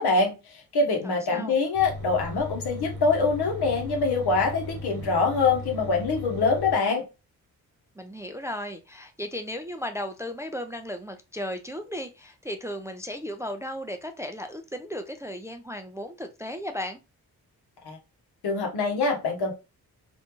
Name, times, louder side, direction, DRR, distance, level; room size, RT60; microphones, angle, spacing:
voice 1, 0.0-7.0 17.8-18.0 18.4-19.5, left 4 dB, 75° left, 1 dB, 1.0 m, -24 dB
voice 2, 1.0-1.6 8.0-17.0, equal, 10° right, 6 dB, 0.3 m, -35 dB
sound 1, 1.7-6.7, left 1 dB, 50° right, 1.1 m, -37 dB
2.6 x 2.2 x 2.9 m, 0.27 s
supercardioid pair, 50°, 39 cm